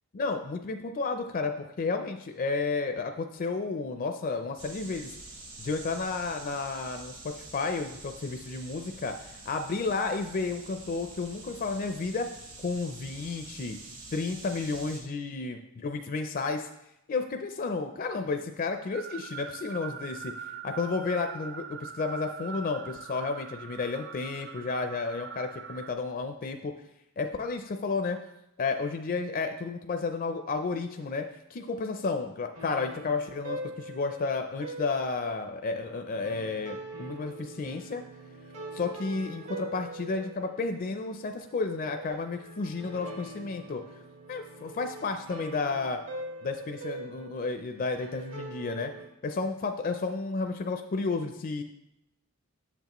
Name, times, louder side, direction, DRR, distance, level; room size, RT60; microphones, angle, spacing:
voice 1, 0.1-5.1 5.6-12.3 12.6-13.8 14.1-16.7 17.1-20.3 20.6-26.7 27.2-28.2 28.6-38.0 38.7-43.8 44.3-46.0 46.4-48.9 49.2-51.6, left 4 dB, 40° left, 6 dB, 0.4 m, -32 dB
sound 1, 4.6-15.0, right 2 dB, 80° right, 2.5 m, -47 dB
sound 2, 18.9-25.9, right 6 dB, 50° right, 0.4 m, -42 dB
sound 3, 31.6-49.0, right 2 dB, 65° right, 1.6 m, -44 dB
8.0 x 7.0 x 3.0 m, 0.84 s
head